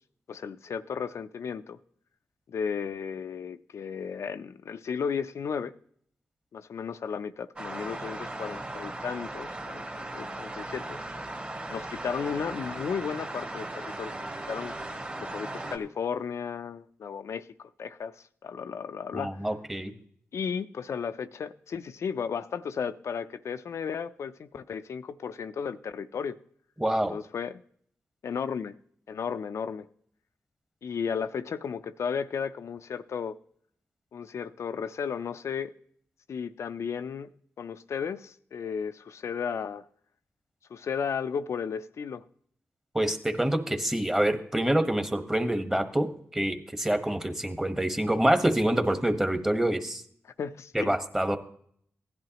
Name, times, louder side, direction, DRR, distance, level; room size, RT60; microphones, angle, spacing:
voice 1, 0.3-1.8 2.5-5.7 6.5-11.0 11.7-14.1 14.5-14.7 15.1-17.4 17.8-19.4 20.3-26.4 27.1-27.6 28.2-28.7 29.1-29.9 30.8-33.3 34.1-35.7 36.3-37.3 37.6-39.8 40.7-42.2 50.2-51.0, left 6 dB, 75° left, 10 dB, 0.4 m, -34 dB
sound 1, 7.6-15.8, right 2 dB, 30° right, 1.8 m, -37 dB
voice 2, 19.1-19.9 26.8-27.2 42.9-50.0 50.7-51.4, right 1 dB, 10° right, 8 dB, 1.2 m, -26 dB
16.0 x 10.5 x 2.9 m, 0.62 s
cardioid pair, 80°, 5 cm